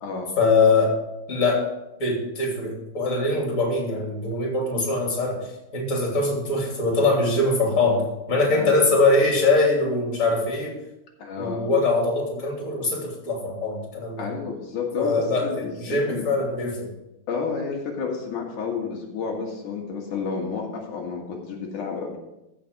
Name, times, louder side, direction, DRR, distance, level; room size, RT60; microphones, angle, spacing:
voice 1, 0.4-0.9 1.3-1.6 2.0-5.5 5.7-10.8 11.4-14.3 15.0-16.9, left 3 dB, 25° left, -1 dB, 3.2 m, -22 dB
voice 2, 11.2-11.6 14.2-16.3 17.3-22.2, left 5 dB, 80° left, -1 dB, 3.2 m, -30 dB
14.5 x 6.0 x 5.3 m, 0.93 s
omnidirectional pair, 3.5 m